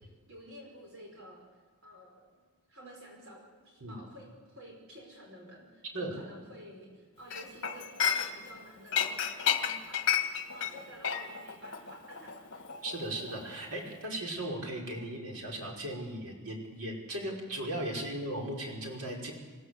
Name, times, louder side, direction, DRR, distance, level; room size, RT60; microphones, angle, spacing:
voice 1, 0.0-1.5 1.8-2.3 2.7-12.6, equal, 60° right, -1 dB, 5.6 m, -51 dB
Chink clink, 7.3-8.6 8.9-13.5 13.8-14.0, left 8 dB, 55° left, 1.6 m, -32 dB
voice 2, 12.8-19.3, right 1 dB, 85° right, -1 dB, 5.6 m, -37 dB
26.5 x 17.5 x 8.0 m, 1.4 s
head